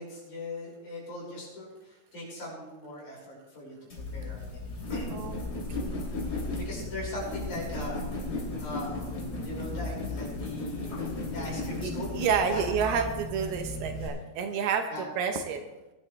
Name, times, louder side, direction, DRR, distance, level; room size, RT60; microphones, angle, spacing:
voice 1, 0.0-3.8 4.1-4.6 4.9-5.1 6.6-8.2 8.6-11.0 11.3-12.6 13.4-13.5 14.9-15.1, left 1 dB, 45° left, -4 dB, 7.0 m, -40 dB
sound 1, 3.9-14.1, left 2 dB, 25° left, 3.1 m, -35 dB
voice 2, 5.7-6.1 11.8-14.9 15.2-15.6, right 6 dB, 75° right, 5 dB, 2.8 m, -29 dB
21.0 x 11.5 x 3.3 m, 1.1 s
omnidirectional pair, 4.7 m